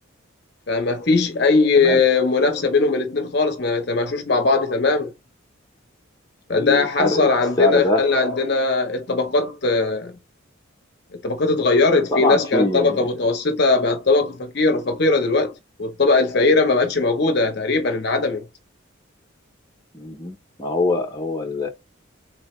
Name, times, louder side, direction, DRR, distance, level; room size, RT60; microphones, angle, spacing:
voice 1, 0.7-5.1 6.5-10.1 11.2-18.5, left 3 dB, 50° left, 0.6 m, -20 dB
voice 2, 6.5-7.3 7.6-8.0 12.1-13.0 19.9-21.7, left 2 dB, 20° left, 0.7 m, -23 dB
3.5 x 2.8 x 3.0 m
head